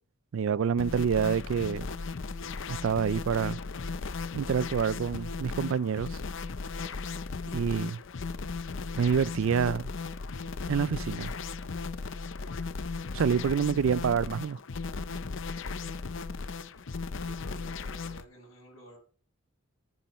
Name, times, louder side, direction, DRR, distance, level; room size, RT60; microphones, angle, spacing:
voice 1, 0.3-1.9 2.7-3.6 4.3-6.2 7.5-8.0 9.0-9.9 10.7-11.3 13.1-14.6, right 7 dB, 65° right, 0.4 m, -27 dB
sound 1, 0.8-18.2, left 4 dB, 60° left, 0.6 m, -36 dB
voice 2, 17.2-19.0, right 1 dB, 80° left, 5.0 m, -52 dB
15.0 x 9.1 x 3.1 m
head